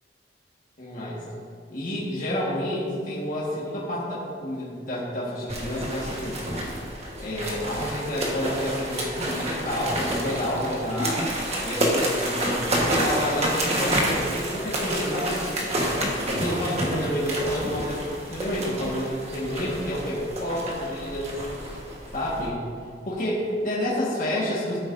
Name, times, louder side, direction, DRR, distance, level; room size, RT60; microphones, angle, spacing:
voice 1, 0.8-1.2 1.7-6.4 7.2-11.2 11.6-15.7 16.3-21.3 22.1-22.6 23.0-24.8, equal, 45° left, -7 dB, 1.7 m, -29 dB
sound 1, 5.5-22.5, right 1 dB, 35° right, 1.4 m, -29 dB
14.0 x 8.2 x 2.7 m, 2.2 s
head